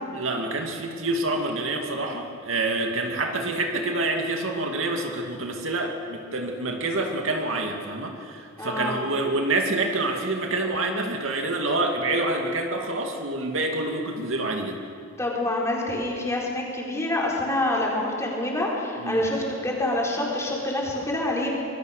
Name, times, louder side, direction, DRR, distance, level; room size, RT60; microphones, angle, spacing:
voice 1, 0.1-14.8 19.0-19.2, right 2 dB, 75° right, 3 dB, 2.4 m, -27 dB
voice 2, 8.6-9.0 15.2-21.5, left 1 dB, 15° left, -3 dB, 4.4 m, -26 dB
25.0 x 21.0 x 6.6 m, 2.4 s
head